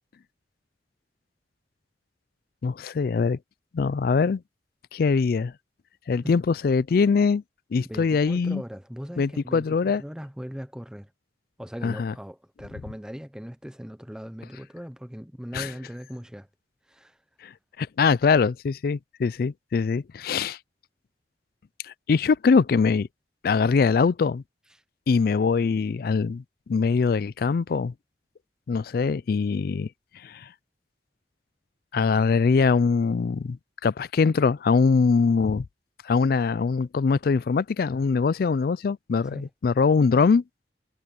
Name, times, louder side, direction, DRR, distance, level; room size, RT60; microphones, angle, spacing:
voice 1, 2.6-3.4 3.7-4.4 4.9-5.5 6.1-7.4 7.7-8.6 9.2-10.0 11.8-12.1 15.5-15.7 17.8-20.6 21.9-23.1 23.4-24.4 25.1-26.4 26.7-27.9 28.7-29.9 30.2-30.4 31.9-33.6 33.8-35.6 36.0-40.4, left 5 dB, 55° left, 0.4 m, -22 dB
voice 2, 7.8-11.1 11.6-16.5 16.9-17.2 39.3-39.4, equal, 5° right, 0.7 m, -39 dB
head